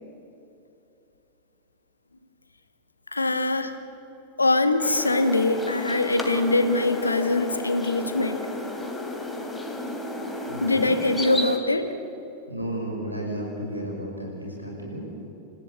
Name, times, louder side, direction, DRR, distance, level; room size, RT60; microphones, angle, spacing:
voice 1, 3.1-3.8 4.4-8.4 10.6-11.9, left 2 dB, 80° left, 9 dB, 1.6 m, -23 dB
sound 1, 4.8-11.6, left 2 dB, 5° left, 2.9 m, -33 dB
voice 2, 10.5-10.9 12.5-15.0, right 1 dB, 85° right, -2 dB, 6.4 m, -33 dB
28.0 x 15.0 x 8.4 m, 2.9 s
figure-of-eight pair, 90°, 0 cm